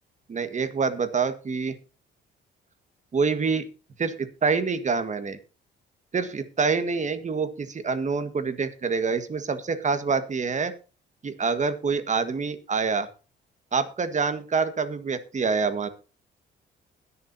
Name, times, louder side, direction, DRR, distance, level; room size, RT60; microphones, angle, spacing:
voice 1, 0.3-1.7 3.1-3.6 4.0-5.4 6.1-10.7 11.2-13.1 13.7-15.9, right 5 dB, 35° right, 10 dB, 1.7 m, -26 dB
21.0 x 7.0 x 2.8 m, 0.34 s
cardioid pair, 90°, 20 cm